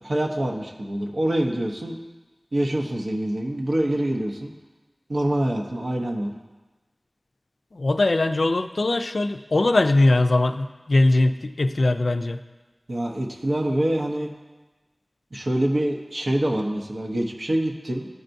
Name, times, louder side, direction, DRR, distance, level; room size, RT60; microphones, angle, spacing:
voice 1, 0.0-2.0 2.5-4.5 5.1-6.3 12.9-14.3 15.3-18.1, right 1 dB, 80° right, 1 dB, 0.8 m, -25 dB
voice 2, 7.7-12.4, left 2 dB, 85° left, 9 dB, 0.3 m, -21 dB
13.5 x 4.5 x 2.6 m, 1.2 s
wide cardioid pair, 55°, 0 cm